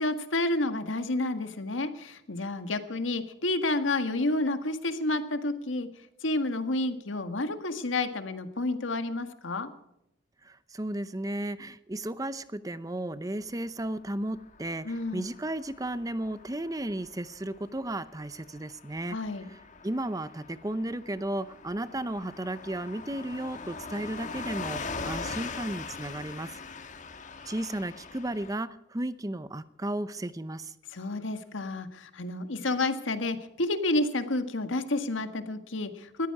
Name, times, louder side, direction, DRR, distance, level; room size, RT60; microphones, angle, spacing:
voice 1, 0.0-5.9 6.2-9.7 14.8-15.3 19.1-19.5 30.9-36.3, left 2 dB, 85° left, 9 dB, 1.7 m, -30 dB
voice 2, 10.4-19.2 19.5-19.6 19.8-26.6 27.5-30.7, right 1 dB, 20° right, 14 dB, 0.6 m, -34 dB
Car passing by / Truck, 14.2-28.6, left 4 dB, 40° left, 1.4 m, -42 dB
20.0 x 14.5 x 4.8 m, 0.84 s
head